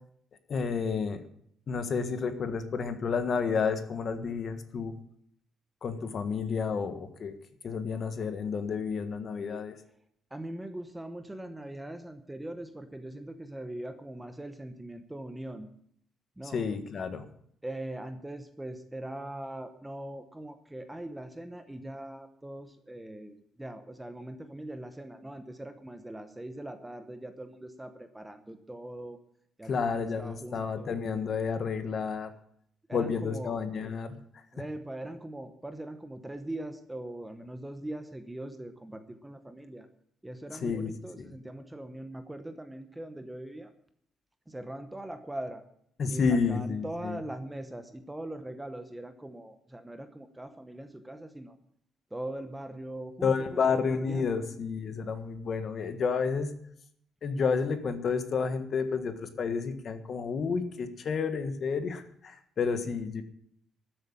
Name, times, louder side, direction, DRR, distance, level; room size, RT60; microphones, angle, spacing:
voice 1, 0.5-1.2 1.7-4.9 5.8-7.3 7.6-9.8 16.4-17.2 29.7-32.3 32.9-34.4 40.6-40.9 41.2-41.3 46.0-47.2 53.2-56.5 57.2-63.2, left 5 dB, 40° left, 9 dB, 1.5 m, -30 dB
voice 2, 10.3-15.7 16.4-16.6 17.6-29.2 29.6-30.9 32.9-33.6 34.5-39.9 40.2-43.7 44.5-45.6 46.1-51.6 52.1-53.6 53.9-54.5, right 1 dB, 5° right, 9 dB, 0.9 m, -41 dB
13.0 x 8.0 x 8.8 m, 0.67 s
cardioid pair, 160°, 0 cm